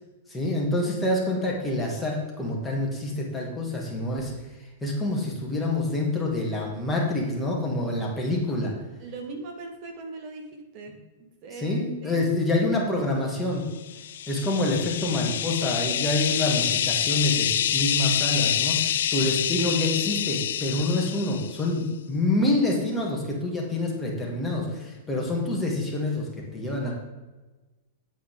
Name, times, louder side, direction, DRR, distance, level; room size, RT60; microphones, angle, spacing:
voice 1, 0.3-4.3 4.8-8.8 11.6-13.6 14.3-26.9, left 2 dB, 5° left, -4 dB, 2.2 m, -27 dB
voice 2, 9.0-12.2, right 3 dB, 40° right, 4 dB, 1.6 m, -40 dB
sound 1, 13.9-21.7, left 10 dB, 75° left, 0.5 m, -27 dB
8.9 x 8.4 x 3.8 m, 1.2 s
hypercardioid pair, 150°, 0 cm